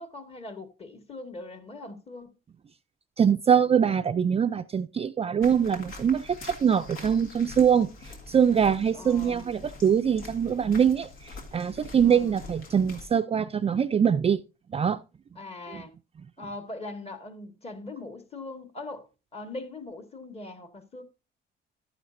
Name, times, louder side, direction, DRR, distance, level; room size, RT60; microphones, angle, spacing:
voice 1, 0.0-2.3 8.9-9.4 12.0-12.3 15.4-15.9 16.4-21.0, left 2 dB, 30° left, 1.6 m, -41 dB
voice 2, 3.2-7.9 8.3-14.4 14.7-15.0 15.7-15.8, right 7 dB, 30° right, 0.4 m, -23 dB
sound 1, 5.4-13.1, left 3 dB, 80° left, 2.0 m, -45 dB
11.5 x 9.1 x 2.6 m
cardioid pair, 120°, 21 cm